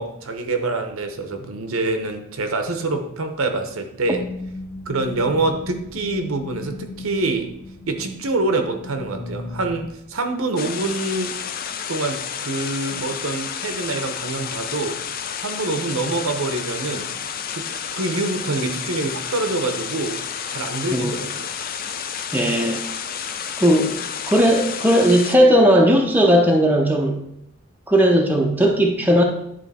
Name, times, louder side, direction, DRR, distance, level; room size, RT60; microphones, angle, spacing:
voice 1, 0.0-4.2 4.9-7.5 7.9-11.3 11.9-15.0 15.4-17.1 17.5-20.2 20.5-21.5, right 2 dB, 70° right, 6 dB, 0.9 m, -25 dB
sound 1, 4.0-9.9, left 3 dB, 65° left, 1.2 m, -36 dB
sound 2, 10.6-25.4, left 7 dB, 40° left, 0.4 m, -30 dB
voice 2, 22.3-22.8 23.6-24.0 24.3-27.2 27.9-29.2, equal, 10° right, 1 dB, 0.6 m, -16 dB
10.5 x 3.9 x 4.2 m, 0.77 s
head